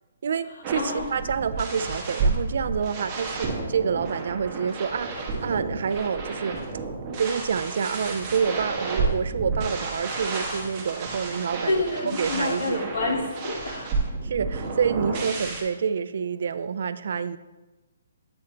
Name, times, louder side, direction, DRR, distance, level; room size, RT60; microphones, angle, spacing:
voice 1, 0.2-6.6 7.2-11.7 12.0-12.9 14.2-17.4, right 6 dB, 60° right, 13 dB, 0.3 m, -28 dB
sound 1, 0.6-15.6, right 3 dB, 20° right, 1.2 m, -31 dB
voice 2, 0.7-1.1 11.7-13.9, left 2 dB, 60° left, 2 dB, 1.3 m, -28 dB
8.5 x 3.8 x 4.4 m, 1.1 s
hypercardioid pair, 165°, 0 cm